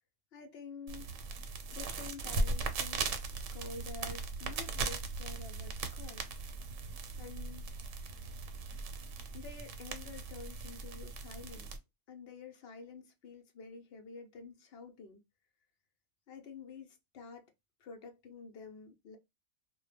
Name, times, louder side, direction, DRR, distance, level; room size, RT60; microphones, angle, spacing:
voice 1, 0.3-1.3 1.7-6.3 7.2-7.7 9.3-11.7 12.1-15.2 16.3-17.5 17.8-19.2, left 4 dB, 65° left, 0.7 m, -49 dB
sound 1, 0.9-11.8, right 3 dB, 90° right, 1.0 m, -38 dB
2.1 x 2.0 x 3.1 m
omnidirectional pair, 1.3 m